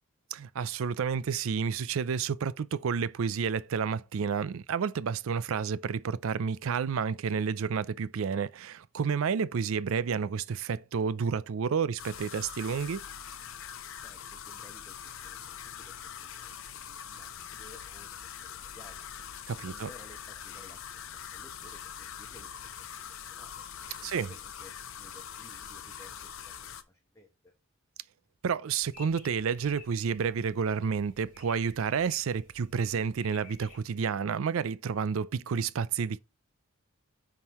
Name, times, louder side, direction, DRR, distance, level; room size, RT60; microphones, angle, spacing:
voice 1, 0.3-13.0 19.5-19.9 24.0-24.3 28.4-36.2, right 6 dB, 70° right, 0.4 m, -30 dB
sound 1, 12.0-26.8, left 8 dB, 65° left, 0.6 m, -43 dB
voice 2, 14.0-19.1 19.7-23.6 24.0-26.6 26.9-27.3, left 1 dB, 15° left, 0.9 m, -56 dB
sound 2, 28.8-33.8, left 3 dB, 35° left, 1.8 m, -54 dB
9.6 x 3.8 x 3.0 m
head